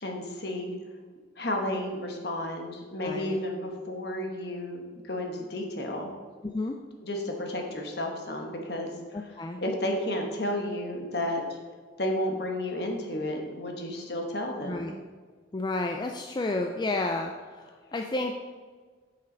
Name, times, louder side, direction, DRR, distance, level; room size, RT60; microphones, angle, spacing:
voice 1, 0.0-0.7 1.4-6.1 7.0-9.3 9.6-11.6 12.0-14.9, left 1 dB, 55° left, 2 dB, 1.2 m, -32 dB
voice 2, 3.0-3.4 6.4-6.7 9.4-9.6 14.7-14.9 15.5-18.3, left 2 dB, 25° left, 3 dB, 0.3 m, -31 dB
8.6 x 6.6 x 3.9 m, 1.5 s
head